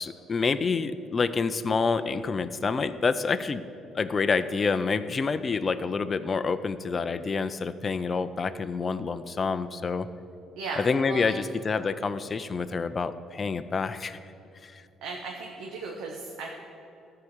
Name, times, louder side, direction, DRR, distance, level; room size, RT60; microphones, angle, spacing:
voice 1, 0.0-3.6 3.9-10.1 10.8-14.2 14.6-14.8, left 4 dB, 30° left, 11 dB, 0.4 m, -28 dB
voice 2, 10.6-11.4 15.0-16.5, right 3 dB, 85° right, -1 dB, 1.1 m, -36 dB
13.5 x 4.8 x 8.0 m, 2.7 s
cardioid pair, 125°, 0 cm